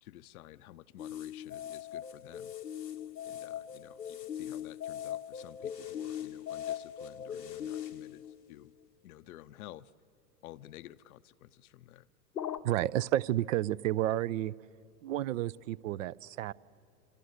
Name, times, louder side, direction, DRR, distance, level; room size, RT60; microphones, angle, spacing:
voice 1, 0.0-2.5 3.3-8.7 9.0-9.9 10.4-12.1, left 14 dB, 60° left, 13 dB, 0.7 m, -52 dB
sound 1, 1.0-8.7 12.4-12.6, left 10 dB, 90° left, 1.1 m, -40 dB
voice 2, 12.6-14.5 15.0-16.5, right 13 dB, 55° right, 23 dB, 0.6 m, -31 dB
28.0 x 25.5 x 8.0 m, 2.9 s
hypercardioid pair, 105°, 49 cm